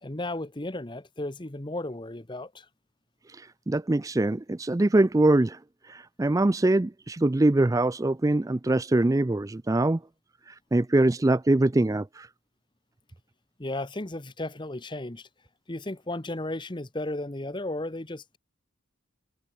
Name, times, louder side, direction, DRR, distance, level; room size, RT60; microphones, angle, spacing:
voice 1, 0.0-2.7 13.6-15.3 15.7-18.4, left 2 dB, 25° left, 1.1 m, -34 dB
voice 2, 3.3-5.6 5.8-10.0 10.5-12.3, right 2 dB, 15° right, 0.4 m, -23 dB
head